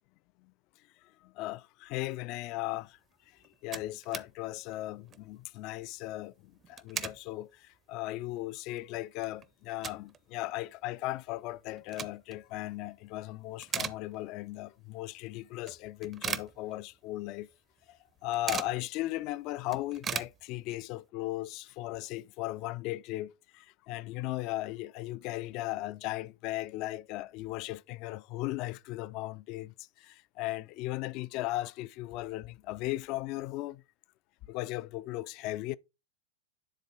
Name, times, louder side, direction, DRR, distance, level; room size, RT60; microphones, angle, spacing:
voice 1, 1.2-3.0 3.6-17.5 17.9-18.0 18.2-33.8 34.5-35.8, left 17 dB, 40° left, 0.3 m, -37 dB
sound 1, 3.1-3.2 3.4-4.3 4.7-4.8 5.0-5.3 6.5-7.2 7.7-7.8 8.4-8.5 8.8-10.2 10.5-10.6 11.6-12.4 12.9-13.2 13.5-14.5 14.9-15.0 15.7-17.2 17.4-17.5 17.8-18.8 19.2-19.3 19.5-20.9, right 7 dB, 25° right, 0.6 m, -39 dB
9.7 x 3.9 x 3.6 m
figure-of-eight pair, 90°, 0 cm